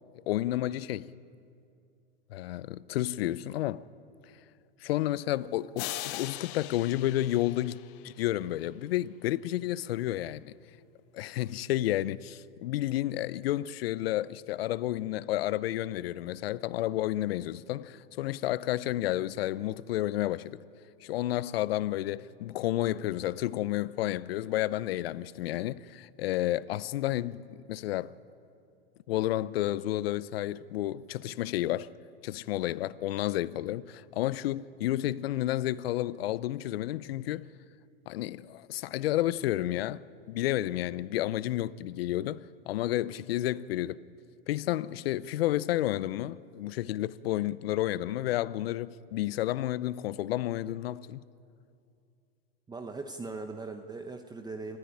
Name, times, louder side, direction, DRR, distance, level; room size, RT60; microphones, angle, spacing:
voice 1, 0.3-1.1 2.3-3.8 4.8-7.8 8.0-10.5 11.1-20.6 21.0-28.1 29.1-31.9 32.2-37.5 38.1-40.0 40.3-44.0 44.5-51.2, left 14 dB, 75° left, 0.8 m, -31 dB
sound 1, 5.8-8.4, left 15 dB, 50° left, 1.1 m, -40 dB
voice 2, 52.7-54.8, right 3 dB, 15° right, 1.2 m, -39 dB
27.0 x 14.0 x 9.8 m
hypercardioid pair, 105°, 30 cm